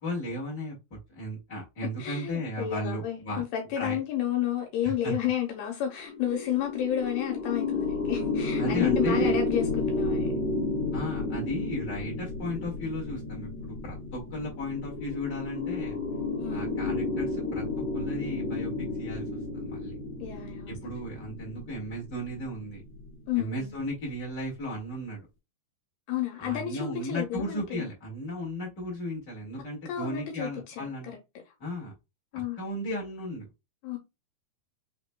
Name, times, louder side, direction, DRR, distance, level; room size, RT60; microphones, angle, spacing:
voice 1, 0.0-3.4 3.7-4.0 4.8-5.1 8.6-9.4 10.9-16.0 16.5-17.6 17.9-19.2 19.5-19.9 20.7-22.8 23.3-25.3 26.4-31.1 31.6-31.9 32.3-33.5, equal, 40° left, 1.5 m, -35 dB
voice 2, 2.0-10.3 16.4-16.8 20.2-20.7 23.3-23.7 26.1-27.9 29.9-31.2 32.3-32.6 33.8-34.0, left 10 dB, 80° left, 2.6 m, -31 dB
sound 1, 6.0-23.5, left 2 dB, 55° left, 1.7 m, -32 dB
5.9 x 3.0 x 2.2 m
omnidirectional pair, 4.6 m